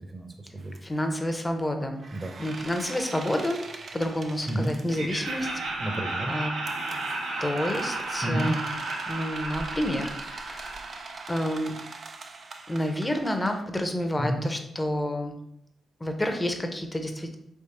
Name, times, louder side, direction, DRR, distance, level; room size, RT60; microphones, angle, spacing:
voice 1, 0.1-0.8 2.1-2.3 4.5-4.7 5.8-6.3 8.2-8.5 14.2-14.4, right 1 dB, 25° right, 4 dB, 0.9 m, -30 dB
sound 1, 0.6-0.8 2.0-5.8 6.7-13.6, right 4 dB, 55° right, 0.5 m, -43 dB
voice 2, 0.8-2.0 2.4-5.6 6.3-6.5 7.4-8.7 9.1-10.8 11.3-11.7 12.7-15.3 16.0-17.4, left 1 dB, 20° left, 5 dB, 0.9 m, -29 dB
Laughter, 4.9-11.9, right 2 dB, 90° right, 1.1 m, -33 dB
3.6 x 3.3 x 4.2 m, 0.76 s
supercardioid pair, 45°, 0 cm